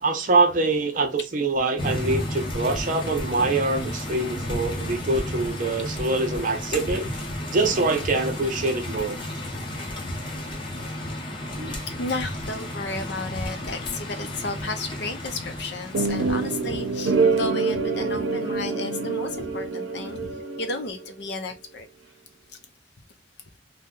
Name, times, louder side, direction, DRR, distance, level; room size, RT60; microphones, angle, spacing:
voice 1, 0.0-7.1 7.5-9.2 11.6-11.8, right 3 dB, 45° right, 0.5 m, -24 dB
sound 1, 1.8-17.3, left 1 dB, 25° left, 0.8 m, -33 dB
voice 2, 12.0-20.3 20.6-21.9, left 2 dB, 60° left, 0.5 m, -33 dB
sound 2, 15.9-21.1, right 4 dB, 85° right, 0.6 m, -26 dB
2.7 x 2.2 x 3.6 m
head